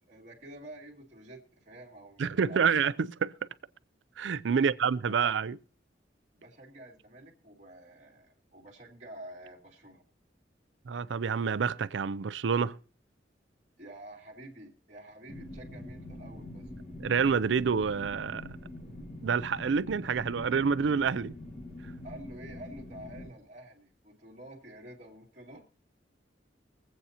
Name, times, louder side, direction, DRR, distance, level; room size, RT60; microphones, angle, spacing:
voice 1, 0.0-2.7 4.5-4.8 5.1-5.2 6.3-10.0 13.8-16.7 22.0-25.6, right 1 dB, 40° right, 2.3 m, -49 dB
voice 2, 2.2-3.3 4.2-5.6 10.9-12.8 17.0-18.4 19.2-21.4, right 6 dB, 90° right, 0.5 m, -28 dB
sound 1, 15.3-23.3, left 1 dB, 35° left, 1.9 m, -44 dB
23.0 x 8.2 x 2.8 m
head